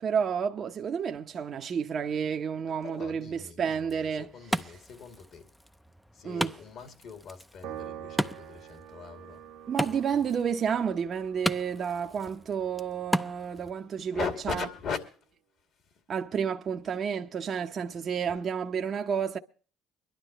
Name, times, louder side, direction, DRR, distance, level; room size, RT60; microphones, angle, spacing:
voice 1, 0.0-4.3 6.2-6.5 9.7-14.6 16.1-19.4, right 7 dB, 45° right, 0.8 m, -30 dB
voice 2, 2.7-5.5 6.1-9.5 9.8-10.3 11.8-11.9 13.5-13.7 14.0-16.0 18.2-18.4, left 6 dB, 60° left, 2.4 m, -40 dB
Wood, 3.7-13.7, equal, ahead, 0.6 m, -36 dB
Piano, 7.6-14.2, right 10 dB, 80° right, 1.1 m, -47 dB
24.0 x 11.5 x 3.0 m
supercardioid pair, 85°, 0 cm